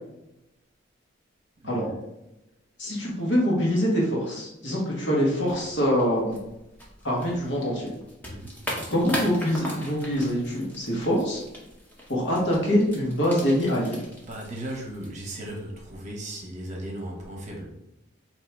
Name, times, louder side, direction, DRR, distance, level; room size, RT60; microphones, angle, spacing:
voice 1, 1.6-2.0 8.3-8.6 14.3-17.8, right 1 dB, 35° right, -1 dB, 0.9 m, -36 dB
voice 2, 2.8-6.4 7.0-7.9 8.9-11.4 12.1-14.0, equal, 60° left, -3 dB, 1.4 m, -24 dB
sound 1, 5.4-15.6, equal, 10° left, 0.9 m, -39 dB
4.4 x 2.9 x 3.4 m, 0.90 s
head